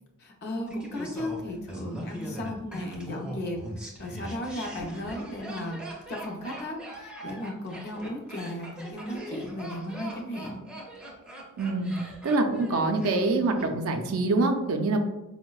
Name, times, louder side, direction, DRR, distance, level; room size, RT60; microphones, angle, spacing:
voice 1, 0.2-5.8 6.1-10.7, left 1 dB, 45° left, 1 dB, 0.5 m, -35 dB
Laughter, 0.7-13.7 13.9-14.0, right 1 dB, 5° right, 0.5 m, -41 dB
voice 2, 11.6-11.9 12.2-15.0, right 2 dB, 65° right, 5 dB, 0.4 m, -25 dB
4.5 x 2.0 x 2.3 m, 0.99 s
head